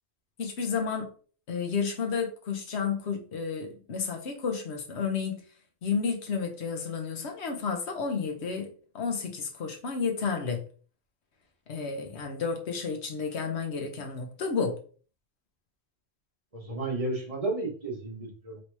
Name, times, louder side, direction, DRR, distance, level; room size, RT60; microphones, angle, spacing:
voice 1, 0.4-1.1 1.5-5.4 5.8-10.6 11.7-14.8, left 5 dB, 60° left, 1.2 m, -31 dB
voice 2, 16.5-18.6, right 2 dB, 30° right, 1.0 m, -32 dB
3.2 x 2.8 x 4.6 m
omnidirectional pair, 1.3 m